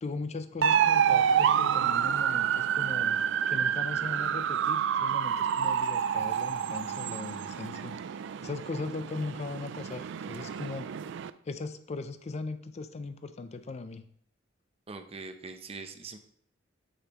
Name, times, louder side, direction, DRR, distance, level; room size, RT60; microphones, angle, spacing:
voice 1, 0.0-3.2 3.5-10.9 11.5-14.1, left 3 dB, 35° left, 11 dB, 0.4 m, -39 dB
sound 1, 0.6-11.3, right 8 dB, 65° right, 0.3 m, -28 dB
voice 2, 14.9-16.2, right 4 dB, 30° right, 7 dB, 0.7 m, -42 dB
8.1 x 6.4 x 3.0 m, 0.64 s
head